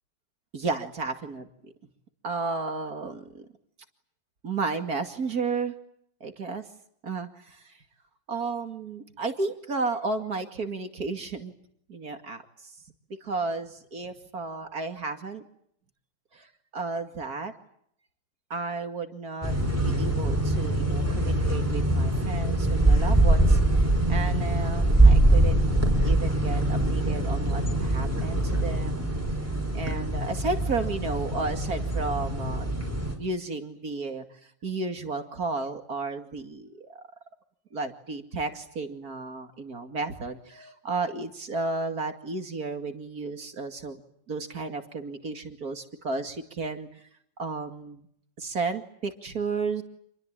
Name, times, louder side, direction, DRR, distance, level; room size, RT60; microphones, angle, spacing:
voice 1, 0.5-1.4 2.2-3.5 4.4-5.7 6.2-6.6 7.0-7.8 8.3-11.5 11.9-12.7 13.2-15.4 16.3-16.5 16.7-17.5 18.5-19.5 19.8-25.6 26.0-29.1 29.7-32.7 33.2-37.0 37.7-44.0 44.3-47.0 47.4-48.1 48.4-49.8, right 3 dB, 50° right, 6 dB, 2.7 m, -33 dB
sound 1, 19.4-33.2, right 1 dB, 5° right, 5.5 m, -23 dB
28.0 x 22.5 x 9.0 m, 0.69 s
omnidirectional pair, 2.1 m